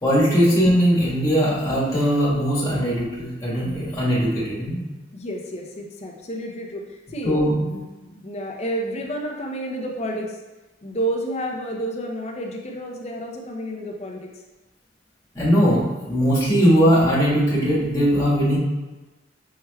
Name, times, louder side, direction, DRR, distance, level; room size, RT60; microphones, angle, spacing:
voice 1, 0.0-4.8 7.2-7.6 15.3-18.6, equal, 20° left, -8 dB, 1.4 m, -19 dB
voice 2, 5.1-7.4 7.7-10.4 10.8-14.3, right 1 dB, 40° left, 0 dB, 0.6 m, -30 dB
5.5 x 3.4 x 2.2 m, 1.2 s
head